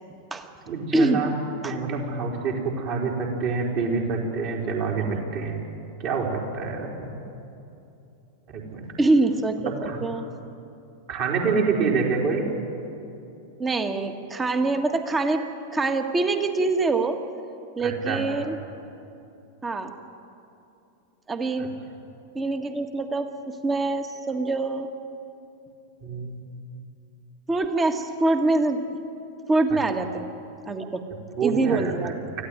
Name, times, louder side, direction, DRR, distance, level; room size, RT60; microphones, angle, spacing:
voice 1, 0.7-1.3 1.6-5.6 6.0-7.1 8.5-8.9 9.6-10.0 11.1-12.4 17.8-18.2 21.6-21.7 26.0-26.4 31.4-32.1, right 4 dB, 45° right, -1 dB, 4.2 m, -27 dB
voice 2, 9.0-10.3 13.6-15.5 15.7-17.2 17.8-18.6 19.6-19.9 21.3-21.7 22.3-24.9 27.5-28.8 29.5-30.3 30.6-31.0 31.4-32.2, right 2 dB, 15° right, 7 dB, 1.6 m, -24 dB
24.5 x 15.0 x 9.4 m, 2.8 s
figure-of-eight pair, 90°, 0 cm